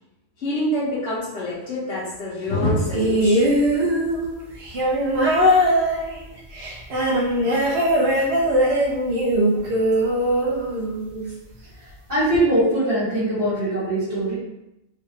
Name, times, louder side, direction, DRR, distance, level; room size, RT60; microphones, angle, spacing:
voice 1, 0.4-3.6, left 1 dB, 65° left, -10 dB, 1.2 m, -25 dB
sound 1, 2.9-11.3 12.3-12.4, equal, 60° right, 0.9 m, -20 dB
voice 2, 11.8-14.3, right 1 dB, 45° right, -12 dB, 1.8 m, -22 dB
3.4 x 3.3 x 2.3 m, 0.86 s
omnidirectional pair, 1.2 m